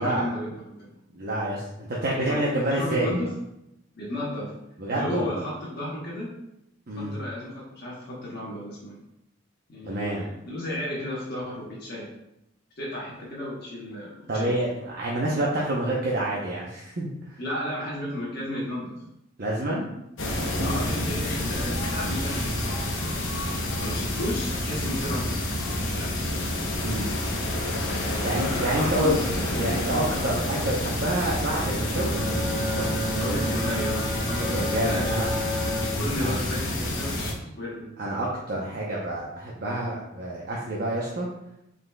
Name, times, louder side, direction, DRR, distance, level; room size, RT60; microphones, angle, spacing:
voice 1, 0.0-1.0 2.1-2.4 2.7-3.3 4.0-4.5 4.9-6.3 7.0-9.0 9.7-12.1 12.8-14.5 17.4-19.0 20.6-23.3 23.8-25.3 25.9-26.2 28.0-29.4 33.2-35.3 36.0-37.9, left 1 dB, 55° left, -6 dB, 1.0 m, -33 dB
voice 2, 1.1-3.2 4.8-5.4 6.9-7.1 9.8-10.3 14.3-17.4 19.4-19.9 26.8-27.1 28.2-29.2 29.6-32.9 34.4-35.3 36.2-36.3 38.0-41.3, right 1 dB, 55° right, -4 dB, 0.7 m, -28 dB
sound 1, 20.2-37.3, left 1 dB, 90° left, 0.9 m, -28 dB
Bowed string instrument, 31.9-37.4, equal, 25° left, 1.3 m, -31 dB
5.6 x 3.9 x 2.2 m, 0.84 s
head